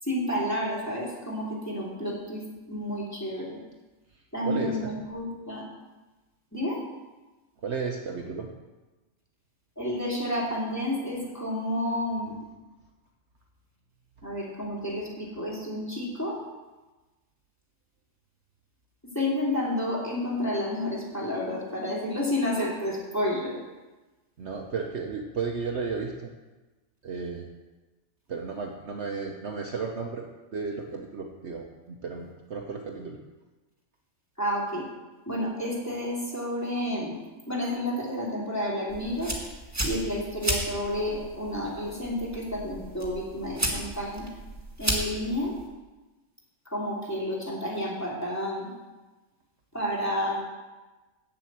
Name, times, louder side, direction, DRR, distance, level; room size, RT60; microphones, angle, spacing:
voice 1, 0.0-3.6 4.3-5.6 6.5-6.8 9.8-12.4 14.2-16.4 19.1-23.5 34.4-34.9 35.3-39.3 39.8-44.2 44.8-45.5 46.7-48.7 49.7-50.4, left 1 dB, 10° left, -6 dB, 2.9 m, -30 dB
voice 2, 4.5-4.9 7.6-8.5 24.4-26.3 27.0-27.5 28.3-30.3 30.5-33.2, right 5 dB, 55° right, 2 dB, 1.1 m, -33 dB
sound 1, 38.9-45.7, right 1 dB, 10° right, 1.6 m, -34 dB
7.5 x 7.5 x 8.3 m, 1.2 s
omnidirectional pair, 1.5 m